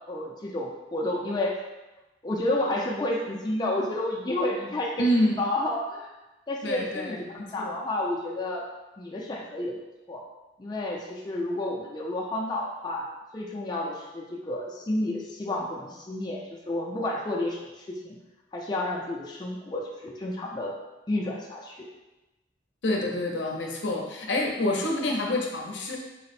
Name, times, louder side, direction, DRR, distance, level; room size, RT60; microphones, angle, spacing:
voice 1, 0.1-1.6 2.2-6.1 6.5-8.6 9.0-9.8 10.1-10.2 10.6-13.1 13.3-18.2 18.5-20.7 21.1-21.9, left 1 dB, 25° left, -2 dB, 0.4 m, -30 dB
voice 2, 5.0-5.3 6.6-7.2 7.6-7.8 22.8-26.0, left 1 dB, 75° left, 0 dB, 0.6 m, -27 dB
4.0 x 2.0 x 4.1 m, 1.0 s
head